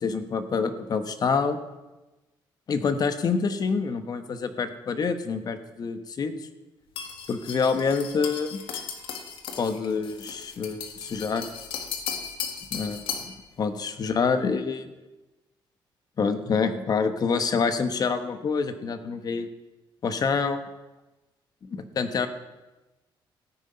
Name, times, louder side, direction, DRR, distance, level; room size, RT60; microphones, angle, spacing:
voice 1, 0.0-1.6 2.7-6.3 7.3-8.6 9.6-11.4 12.7-13.1 13.6-14.9 16.2-19.5 20.0-20.6 21.7-22.3, left 5 dB, 50° left, 10 dB, 1.2 m, -26 dB
sound 1, 7.0-13.4, left 7 dB, 85° left, 1.5 m, -36 dB
15.5 x 9.1 x 5.6 m, 1.1 s
cardioid pair, 100°, 9 cm